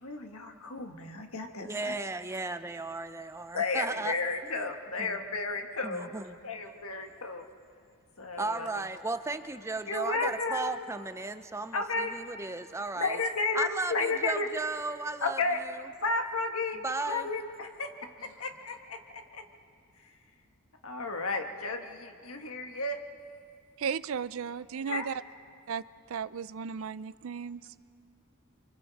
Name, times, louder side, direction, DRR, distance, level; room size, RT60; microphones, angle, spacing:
voice 1, 0.0-1.9 3.5-6.1 6.4-7.4 8.2-8.7 9.9-10.8 11.7-12.1 13.0-14.5 15.2-15.6 16.0-16.8 17.0-17.9 18.2-19.4 20.0-20.1 20.8-23.0 24.9-25.1, left 3 dB, 75° left, 5 dB, 1.6 m, -33 dB
voice 2, 1.6-4.1 4.5-4.7 5.0-5.2 5.8-6.4 8.4-13.2 13.5-15.4 16.8-17.3, right 3 dB, 15° right, 10 dB, 0.5 m, -35 dB
voice 3, 23.8-25.2 25.7-27.8, right 6 dB, 65° right, 17 dB, 0.4 m, -35 dB
29.5 x 24.5 x 4.1 m, 2.4 s
head